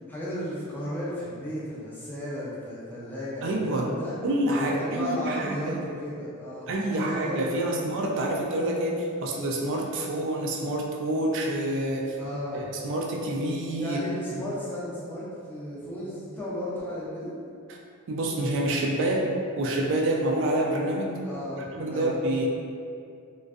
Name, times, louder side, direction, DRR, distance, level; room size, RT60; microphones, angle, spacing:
voice 1, 0.1-4.1 4.5-7.8 12.2-12.7 13.8-17.3 21.2-22.1, equal, 10° left, -9 dB, 0.4 m, -34 dB
voice 2, 3.4-3.9 4.2-5.8 6.7-12.2 12.5-14.0 14.4-14.5 18.1-19.3 19.6-21.2 21.6-22.5, right 1 dB, 55° right, 0 dB, 0.3 m, -27 dB
2.4 x 2.2 x 2.4 m, 2.4 s
head